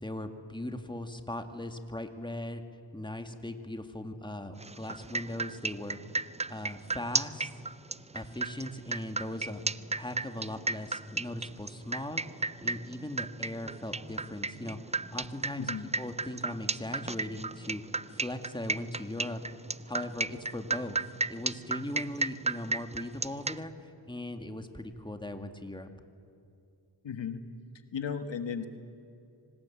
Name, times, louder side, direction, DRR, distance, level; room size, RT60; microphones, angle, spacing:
voice 1, 0.0-2.6 2.9-6.0 6.5-7.6 8.1-9.6 9.9-15.7 16.0-17.8 18.1-19.4 19.9-25.9, left 1 dB, 10° left, 6 dB, 2.1 m, -39 dB
sound 1, 4.6-23.6, right 3 dB, 15° right, 0.5 m, -33 dB
voice 2, 15.6-15.9 27.0-27.4 27.9-28.7, left 6 dB, 75° left, 8 dB, 1.5 m, -35 dB
25.5 x 19.0 x 8.7 m, 2.5 s
cardioid pair, 55°, 44 cm